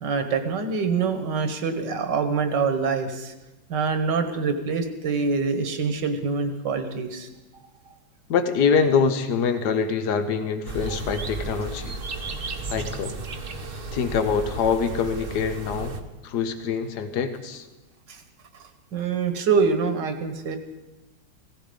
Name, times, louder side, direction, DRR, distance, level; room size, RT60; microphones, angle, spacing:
voice 1, 0.0-3.3 3.7-7.3 18.1-18.2 18.9-20.6, right 5 dB, 70° right, 8 dB, 2.0 m, -25 dB
voice 2, 8.3-11.9 12.7-13.2 13.9-15.9 16.2-17.7, left 6 dB, 65° left, 9 dB, 1.6 m, -24 dB
sound 1, 10.7-16.0, right 3 dB, 40° right, 1.0 m, -34 dB
16.5 x 15.0 x 5.2 m, 1.0 s
omnidirectional pair, 2.0 m